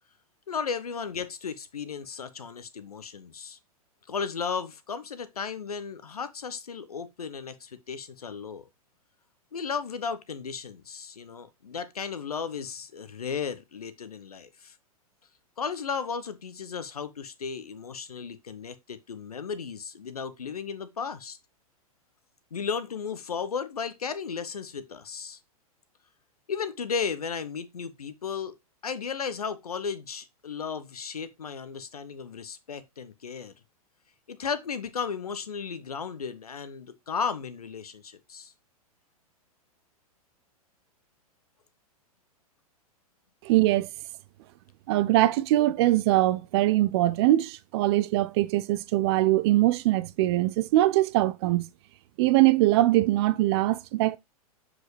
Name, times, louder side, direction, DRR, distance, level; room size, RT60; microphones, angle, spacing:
voice 1, 0.5-3.6 4.1-8.7 9.5-14.7 15.6-21.4 22.5-25.4 26.5-28.5 28.8-33.5 34.3-38.5, left 6 dB, 75° left, 0.9 m, -35 dB
voice 2, 43.4-43.9 44.9-51.7 52.2-54.2, right 16 dB, 45° right, 0.6 m, -22 dB
7.6 x 4.9 x 3.2 m
figure-of-eight pair, 100°, 19 cm